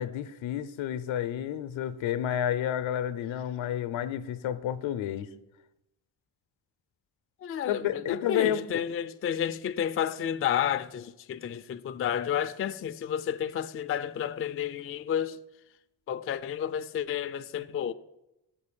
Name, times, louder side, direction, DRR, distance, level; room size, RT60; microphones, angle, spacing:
voice 1, 0.0-5.3 7.7-8.9, left 10 dB, 75° left, 0.7 m, -30 dB
voice 2, 7.4-15.4 16.1-17.9, left 9 dB, 30° left, 0.4 m, -31 dB
6.9 x 5.4 x 6.8 m
supercardioid pair, 55°, 48 cm